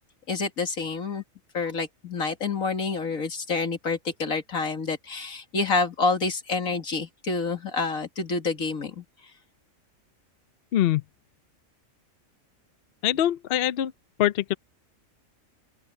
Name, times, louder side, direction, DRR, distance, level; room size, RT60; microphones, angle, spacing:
voice 1, 0.3-1.2 1.5-9.0, left 4 dB, 85° left, 2.6 m, -28 dB
voice 2, 13.0-13.9 14.2-14.5, left 12 dB, 60° left, 0.7 m, -23 dB
open air
omnidirectional pair, 1.4 m